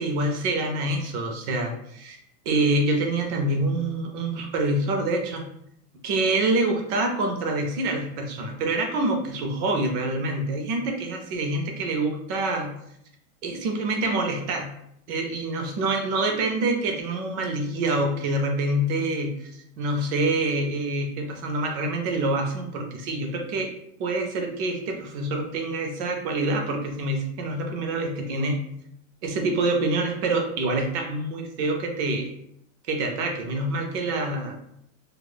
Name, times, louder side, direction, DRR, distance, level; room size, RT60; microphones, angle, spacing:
voice 1, 0.0-2.2 2.5-5.5 6.0-12.7 13.4-14.7 15.1-19.5 19.8-23.7 24.0-28.6 29.2-32.3 32.9-34.6, right 2 dB, 55° right, 2 dB, 0.6 m, -26 dB
2.4 x 2.0 x 3.3 m, 0.75 s
supercardioid pair, 155°, 43 cm